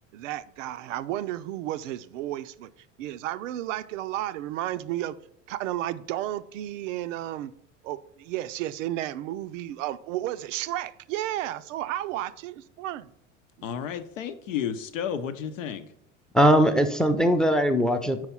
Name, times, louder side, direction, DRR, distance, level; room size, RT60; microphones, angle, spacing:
voice 1, 0.1-2.7 3.0-5.2 5.5-7.5 7.8-13.1 13.6-13.7, right 13 dB, 75° right, 0.5 m, -32 dB
voice 2, 13.6-15.9, left 8 dB, 85° left, 0.7 m, -32 dB
voice 3, 16.3-18.3, equal, ahead, 0.5 m, -20 dB
4.8 x 4.5 x 5.6 m
hypercardioid pair, 90°, 38 cm